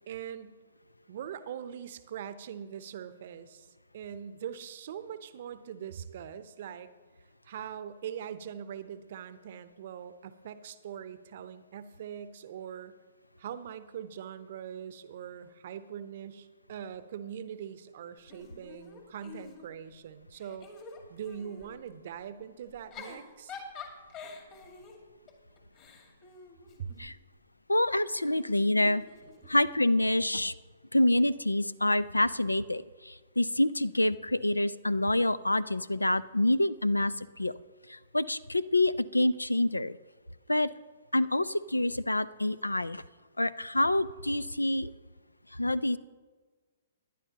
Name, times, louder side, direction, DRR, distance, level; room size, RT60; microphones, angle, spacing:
voice 1, 0.1-0.6 1.1-3.7 3.9-6.9 7.4-12.9 13.4-20.7 21.1-23.5 26.8-26.9, right 9 dB, 50° right, 13 dB, 0.7 m, -42 dB
Giggle / Chuckle chortle, 18.3-19.9 20.3-21.7 22.7-27.2 28.3-29.7, left 4 dB, 35° left, 2.0 m, -47 dB
voice 2, 27.7-29.0 29.5-30.5 30.9-37.5 37.9-40.0 40.5-40.7 41.1-43.0 43.4-44.9 45.5-46.0, left 1 dB, 90° left, 19 dB, 0.4 m, -27 dB
18.0 x 10.5 x 2.9 m, 1.4 s
figure-of-eight pair, 120°, 0 cm